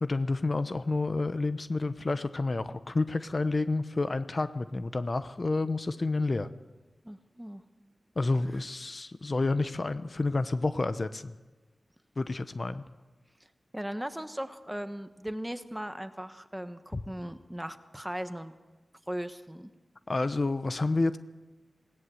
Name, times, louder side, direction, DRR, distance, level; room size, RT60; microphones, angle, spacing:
voice 1, 0.0-6.5 8.2-11.3 12.2-12.8 16.9-17.0 20.1-21.2, left 3 dB, 50° left, 12 dB, 0.8 m, -29 dB
voice 2, 7.0-7.6 8.5-8.6 13.7-18.5 19.1-19.7, equal, 10° right, 10 dB, 1.3 m, -38 dB
19.5 x 17.5 x 7.9 m, 1.2 s
cardioid pair, 55°, 0 cm